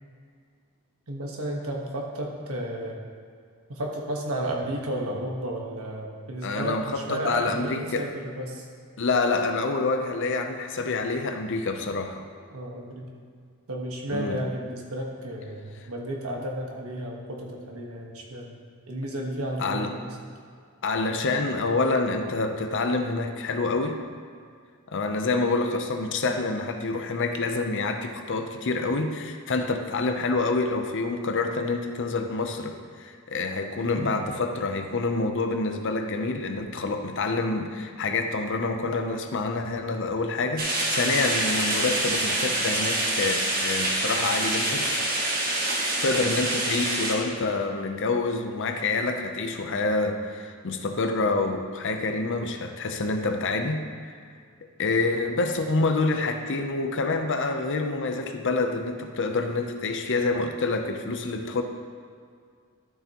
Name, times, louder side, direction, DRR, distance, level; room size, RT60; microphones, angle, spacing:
voice 1, 1.1-3.0 3.7-8.7 12.5-13.1 13.7-18.5 18.9-20.1 34.0-34.2, right 1 dB, 70° right, 0 dB, 1.4 m, -33 dB
voice 2, 6.4-8.1 9.0-12.2 14.1-14.4 19.6-20.0 20.8-24.0 24.9-44.9 45.7-54.2 54.8-61.6, left 3 dB, 55° left, 6 dB, 0.6 m, -27 dB
sound 1, 40.6-47.1, right 1 dB, 40° right, 1.4 m, -26 dB
12.5 x 6.8 x 3.0 m, 2.2 s
head